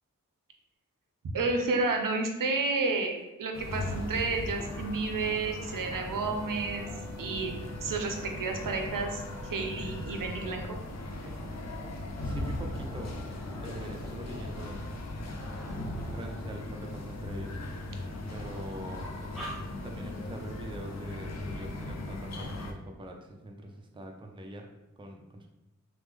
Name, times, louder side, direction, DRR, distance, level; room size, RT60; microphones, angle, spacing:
voice 1, 1.3-6.9 7.2-7.5 7.8-9.2 9.5-10.8, right 3 dB, 80° right, 3 dB, 0.5 m, -31 dB
sound 1, 3.2-3.3 3.5-6.0 6.4-17.8 18.2-18.6 18.9-20.2 20.5-20.6 20.9-21.3, equal, ahead, 1.1 m, -50 dB
sound 2, 3.5-22.7, left 1 dB, 55° left, 0.5 m, -38 dB
Wind instrument woodwind instrument, 6.1-10.6, equal, 90° left, 0.8 m, -51 dB
voice 2, 12.2-13.4 13.6-15.5 16.1-17.6 18.3-19.0 19.8-24.7 25.0-25.5, right 1 dB, 15° right, 2 dB, 0.4 m, -43 dB
3.1 x 2.0 x 3.4 m, 0.95 s
wide cardioid pair, 60°, 32 cm